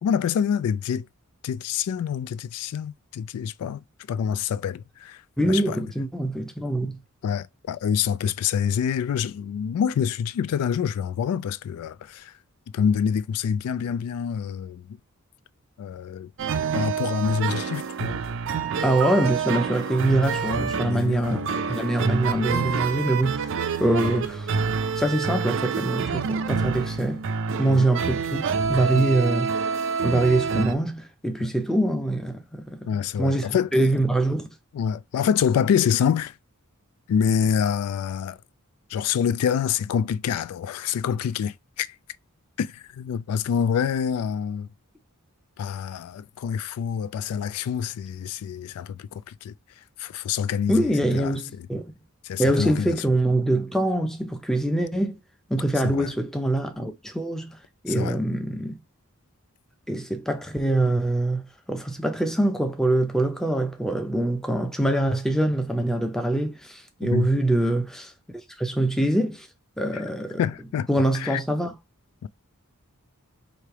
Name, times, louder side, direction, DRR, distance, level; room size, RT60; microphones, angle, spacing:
voice 1, 0.0-1.1 1.4-3.8 4.1-5.2 5.5-5.8 7.2-12.3 12.7-14.9 15.8-16.3 16.7-18.2 18.8-19.0 20.8-21.8 27.7-27.9 28.9-29.1 31.4-31.5 32.9-33.9 34.7-36.4 37.1-38.4 38.9-42.0 42.6-44.7 45.6-49.5 50.0-51.7 52.2-53.0 55.8-56.1 57.9-58.2 67.0-67.3 70.4-70.9 71.1-71.4 72.2-72.3, left 7 dB, 80° left, 0.3 m, -26 dB
voice 2, 5.4-7.0 18.8-23.5 23.8-24.5 25.0-27.3 27.6-29.5 30.0-33.5 33.7-34.5 50.7-51.9 52.4-55.2 55.5-57.6 57.8-58.8 59.9-68.1 68.6-69.5 69.8-70.4 70.9-71.7, right 1 dB, ahead, 0.5 m, -24 dB
sound 1, 16.4-30.7, right 5 dB, 60° right, 0.4 m, -27 dB
3.2 x 2.9 x 4.5 m
head